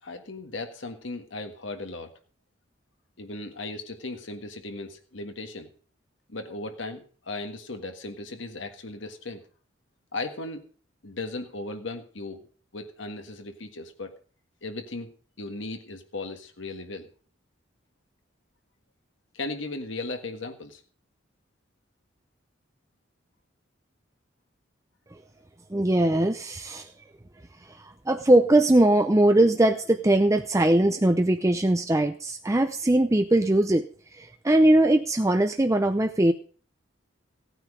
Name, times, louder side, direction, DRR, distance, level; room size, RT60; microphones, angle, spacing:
voice 1, 0.0-2.1 3.2-5.7 6.3-9.4 10.1-10.6 11.0-12.5 12.7-14.1 14.6-15.1 15.4-17.1 19.3-20.8, left 2 dB, 75° left, 5 dB, 1.6 m, -36 dB
voice 2, 25.7-26.9 27.6-33.9 34.1-36.3, right 1 dB, 15° right, 7 dB, 0.6 m, -21 dB
16.0 x 9.2 x 5.0 m, 0.42 s
head